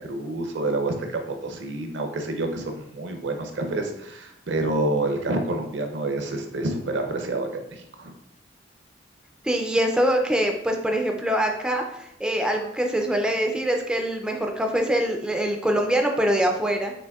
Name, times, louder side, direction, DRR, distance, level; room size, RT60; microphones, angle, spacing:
voice 1, 0.0-8.1, right 2 dB, 65° right, 5 dB, 0.6 m, -28 dB
voice 2, 9.4-16.9, equal, 5° right, 2 dB, 0.3 m, -24 dB
6.0 x 2.9 x 2.3 m, 0.79 s
head